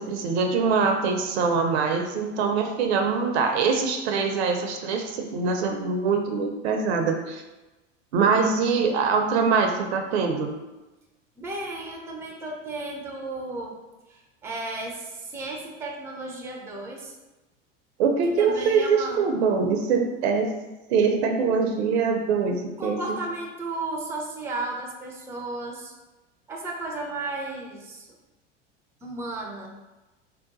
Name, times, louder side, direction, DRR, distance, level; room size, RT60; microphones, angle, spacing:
voice 1, 0.0-7.4 8.1-10.5 18.0-20.5 20.9-23.2, right 5 dB, 60° right, 4 dB, 0.6 m, -23 dB
voice 2, 11.4-13.8 14.1-17.1 18.4-19.2 22.8-25.9 26.5-28.1 29.0-29.7, right 2 dB, 5° right, -1 dB, 0.5 m, -34 dB
2.8 x 2.2 x 3.8 m, 1.1 s
hypercardioid pair, 85°, 37 cm